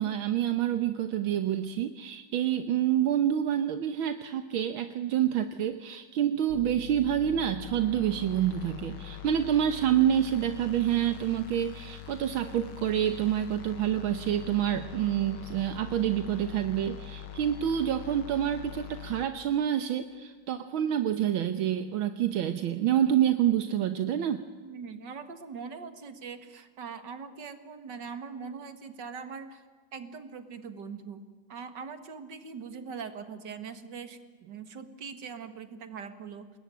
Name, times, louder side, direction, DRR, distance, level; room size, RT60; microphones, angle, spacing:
voice 1, 0.0-24.4, right 10 dB, 75° right, 9 dB, 1.8 m, -27 dB
sound 1, 6.5-19.2, left 12 dB, 90° left, 2.4 m, -43 dB
voice 2, 24.6-29.6 29.9-31.2 31.5-36.5, right 5 dB, 60° right, 10 dB, 2.4 m, -42 dB
27.5 x 21.0 x 9.1 m, 1.4 s
omnidirectional pair, 2.2 m